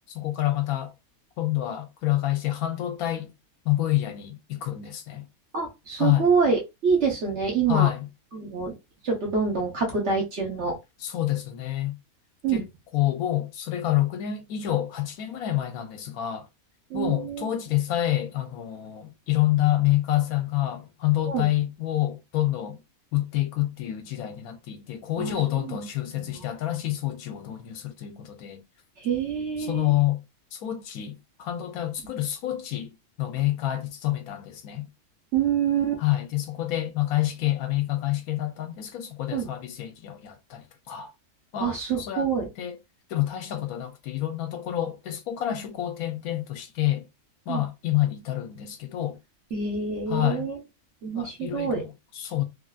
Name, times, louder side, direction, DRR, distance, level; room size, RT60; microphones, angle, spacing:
voice 1, 0.1-0.9 1.4-3.3 3.6-5.3 6.0-6.3 7.7-8.1 11.0-12.0 12.5-12.7 12.9-16.5 16.9-22.8 23.1-28.6 29.6-30.2 30.5-32.9 33.2-34.9 36.0-41.1 41.5-42.3 42.6-42.8 43.1-47.1 47.5-49.2 50.1-50.5 51.1-52.4, left 14 dB, 80° left, 1.1 m, -27 dB
voice 2, 5.5-7.9 8.3-8.8 9.0-10.8 12.4-12.6 16.9-17.5 21.3-21.5 25.2-25.8 26.1-26.4 29.0-29.9 35.3-36.0 39.3-39.5 41.6-42.5 47.5-47.6 49.5-50.6 51.0-51.8, right 5 dB, 55° right, 1.2 m, -26 dB
3.2 x 2.5 x 2.3 m
omnidirectional pair, 1.6 m